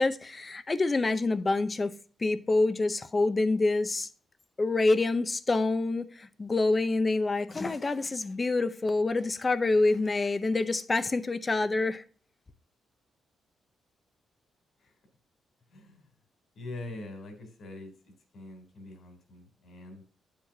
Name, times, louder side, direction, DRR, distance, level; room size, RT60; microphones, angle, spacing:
voice 1, 0.0-4.1 4.6-12.0, left 3 dB, 25° left, 0.6 m, -27 dB
voice 2, 16.5-17.9 18.3-20.0, left 2 dB, 60° left, 3.3 m, -43 dB
8.9 x 7.4 x 2.7 m
cardioid pair, 120°, 0 cm